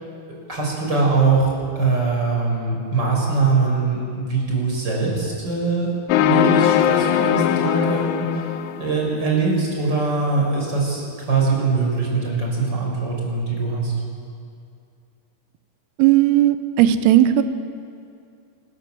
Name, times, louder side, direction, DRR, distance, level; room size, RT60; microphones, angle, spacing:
voice 1, 0.5-8.5 8.8-13.9, right 4 dB, 20° right, -2 dB, 6.2 m, -22 dB
sound 1, 6.1-9.1, left 11 dB, 85° left, 3.4 m, -20 dB
voice 2, 16.0-17.4, right 13 dB, 90° right, 11 dB, 3.7 m, -16 dB
25.0 x 21.0 x 7.8 m, 2.4 s
omnidirectional pair, 5.8 m